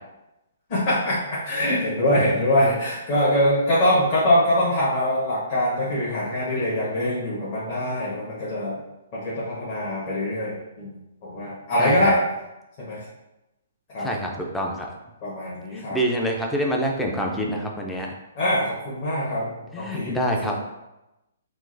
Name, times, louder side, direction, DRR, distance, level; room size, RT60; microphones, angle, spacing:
voice 1, 0.7-8.8 9.1-11.0 11.2-12.2 12.8-13.0 13.9-14.1 15.2-16.0 18.3-19.5 19.8-20.1 20.5-20.6, left 1 dB, 40° left, -10 dB, 1.2 m, -23 dB
voice 2, 11.8-12.1 14.0-14.9 15.7-18.1 19.7-20.6, equal, 5° left, 0 dB, 0.5 m, -26 dB
3.6 x 2.5 x 2.6 m, 0.95 s
figure-of-eight pair, 125°, 0 cm